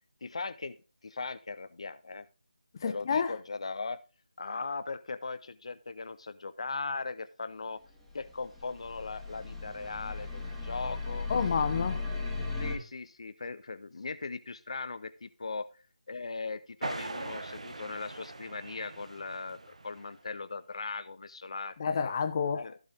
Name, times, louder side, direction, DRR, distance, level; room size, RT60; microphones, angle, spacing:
voice 1, 0.2-0.8 1.0-2.3 2.8-4.0 4.4-7.8 8.1-11.3 12.6-15.7 16.1-22.1 22.5-22.8, left 4 dB, 50° left, 0.6 m, -39 dB
voice 2, 2.8-3.4 11.3-12.0 21.8-22.6, left 6 dB, 30° left, 1.1 m, -29 dB
sound 1, 8.0-12.8, left 3 dB, 5° right, 1.7 m, -36 dB
sound 2, 16.8-20.3, right 2 dB, 55° right, 1.2 m, -41 dB
15.0 x 5.1 x 3.7 m
figure-of-eight pair, 160°, 4 cm